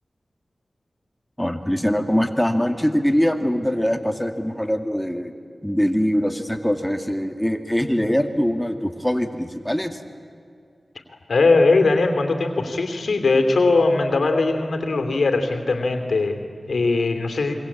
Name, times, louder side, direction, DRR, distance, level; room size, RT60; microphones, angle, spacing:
voice 1, 1.4-5.3 5.6-10.0, equal, 5° left, 6 dB, 2.3 m, -22 dB
voice 2, 11.3-17.5, left 3 dB, 85° left, 6 dB, 3.0 m, -20 dB
27.5 x 24.0 x 8.7 m, 2.3 s
cardioid pair, 45°, 0 cm